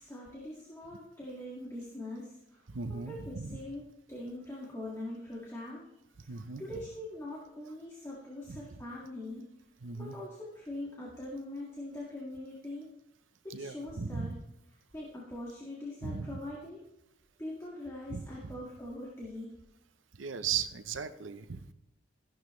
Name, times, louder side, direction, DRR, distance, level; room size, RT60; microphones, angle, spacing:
voice 1, 0.0-2.6 2.9-5.9 6.2-9.5 10.0-12.9 13.4-14.3 14.9-16.9 17.4-19.5, left 1 dB, 15° left, -6 dB, 1.9 m, -42 dB
voice 2, 2.7-3.6 6.3-6.6 8.5-8.6 9.8-10.2 13.5-14.4 16.0-16.4 18.1-18.6 20.2-21.7, right 6 dB, 85° right, 12 dB, 0.8 m, -37 dB
14.0 x 11.5 x 3.2 m, 0.87 s
head